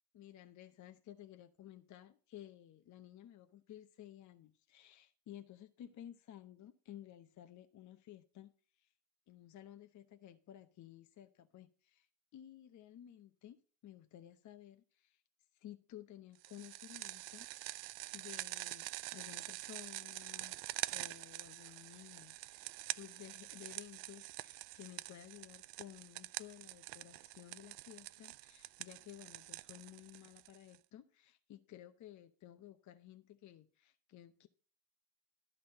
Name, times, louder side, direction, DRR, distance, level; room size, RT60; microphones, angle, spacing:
voice 1, 0.1-8.5 8.8-8.9 9.3-12.1 12.3-13.6 13.8-15.2 15.5-34.5, left 12 dB, 40° left, 0.8 m, -55 dB
sound 1, 16.4-30.8, right 20 dB, 75° right, 0.5 m, -46 dB
12.0 x 3.9 x 7.7 m
supercardioid pair, 90°, 46 cm